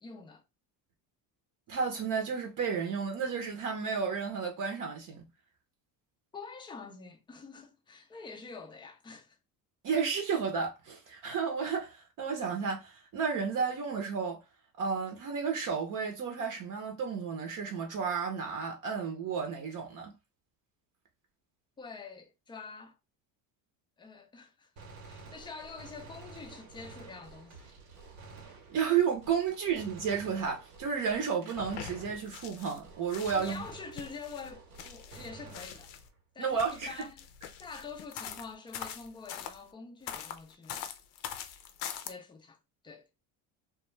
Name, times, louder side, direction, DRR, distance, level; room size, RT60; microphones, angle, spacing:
voice 1, 0.0-0.4 6.3-9.4 21.8-23.0 24.0-27.7 33.3-35.9 36.3-37.2 37.6-40.9 42.0-42.6 42.8-43.1, left 4 dB, 10° left, 0.3 m, -46 dB
voice 2, 1.7-5.2 9.8-14.4 14.8-20.1 28.7-33.6 36.4-37.0, right 6 dB, 45° right, 0.7 m, -32 dB
Gunshot gunfire, 24.8-32.6 32.8-36.2, right 4 dB, 85° right, 1.1 m, -51 dB
sound 1, 31.6-32.8 33.1-36.1 36.5-39.6 40.1-42.1, left 9 dB, 70° left, 0.6 m, -43 dB
2.2 x 2.2 x 3.1 m
cardioid pair, 115°, 44 cm